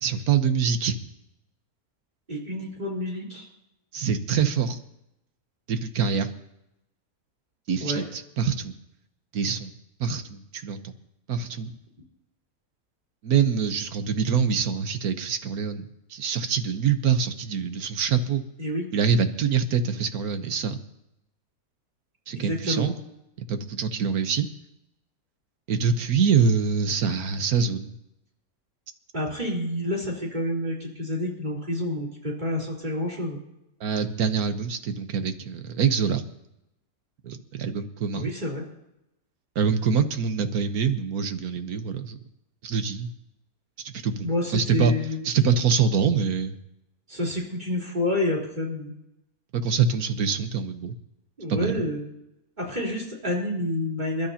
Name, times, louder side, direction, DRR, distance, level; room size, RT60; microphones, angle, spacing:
voice 1, 0.0-1.0 3.9-4.8 5.7-6.3 7.7-8.7 9.3-9.7 10.0-10.9 11.3-11.7 13.2-15.8 16.1-18.4 18.9-20.8 22.3-22.9 23.5-24.5 25.7-27.9 33.8-36.2 37.2-38.3 39.5-42.2 42.6-43.1 43.8-44.9 45.2-46.5 49.5-50.9 51.5-51.8, right 6 dB, 80° right, 8 dB, 1.5 m, -25 dB
voice 2, 2.3-3.5 7.8-8.0 18.6-18.9 22.3-22.9 29.1-33.4 38.2-38.6 44.2-45.3 47.1-48.9 51.4-52.0 52.6-54.3, left 1 dB, 30° right, -3 dB, 4.1 m, -28 dB
27.0 x 12.5 x 2.9 m, 0.87 s
omnidirectional pair, 1.6 m